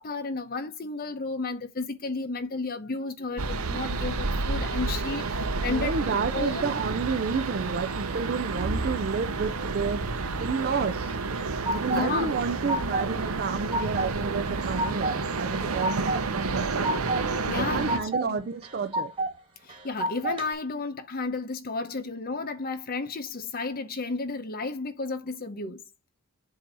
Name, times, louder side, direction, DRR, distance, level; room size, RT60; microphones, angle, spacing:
voice 1, 0.0-6.7 11.9-12.4 17.3-18.4 19.6-25.8, left 3 dB, 40° left, 0.9 m, -33 dB
sound 1, 3.4-18.0, right 3 dB, 75° right, 0.8 m, -30 dB
voice 2, 5.6-10.0 10.4-11.2 11.7-16.9 17.5-19.1, right 5 dB, 45° right, 0.4 m, -30 dB
sound 2, 11.1-12.0 12.4-13.1 13.4-14.1 14.5-15.2 15.5-16.2 16.6-17.2 17.6-18.3 18.6-19.3 19.7-20.5, right 1 dB, 25° right, 1.7 m, -30 dB
7.5 x 2.8 x 5.2 m
head